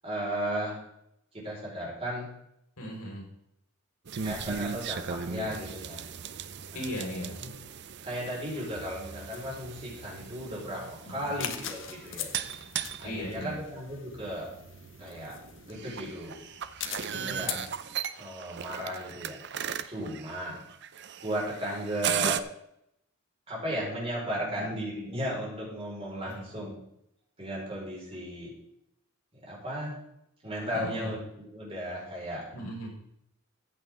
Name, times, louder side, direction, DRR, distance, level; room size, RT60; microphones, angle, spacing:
voice 1, 0.0-0.8 1.3-2.3 4.2-6.0 6.7-6.8 7.2-7.6 8.0-12.4 13.0-14.5 15.0-15.4 15.6-16.4 17.0-17.6 18.1-19.4 19.9-20.6 21.2-22.4 23.5-26.8 27.4-28.5 29.3-30.0 30.4-32.5, equal, 25° right, -5 dB, 4.9 m, -35 dB
voice 2, 2.8-3.2 6.7-7.4 11.0-11.4 13.0-13.6 17.1-17.6 24.5-24.6 26.2-26.4 30.7-31.1 32.5-32.9, equal, 90° left, -2 dB, 4.9 m, -37 dB
sound 1, 4.1-22.4, right 8 dB, 50° right, 0.6 m, -37 dB
sound 2, 9.3-17.7, left 9 dB, 55° left, 1.1 m, -43 dB
14.5 x 8.5 x 3.7 m, 0.76 s
head